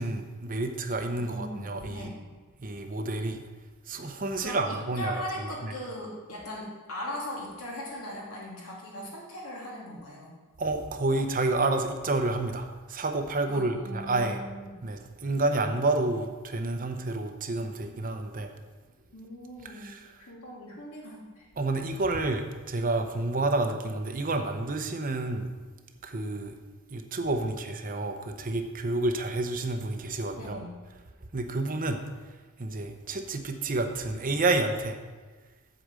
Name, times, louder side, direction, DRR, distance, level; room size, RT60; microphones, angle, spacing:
voice 1, 0.0-2.1 2.6-3.4 3.9-5.1 5.6-5.7 10.6-14.4 14.8-18.5 19.7-20.1 21.6-25.5 26.0-26.5 26.9-30.6 31.3-32.0 32.6-35.0, right 2 dB, 40° right, 5 dB, 0.7 m, -29 dB
voice 2, 1.2-2.2 4.4-10.3 13.5-14.7 19.1-19.9 20.2-21.5 30.3-30.8, left 1 dB, 70° left, -3 dB, 2.6 m, -39 dB
8.1 x 5.0 x 7.5 m, 1.3 s
head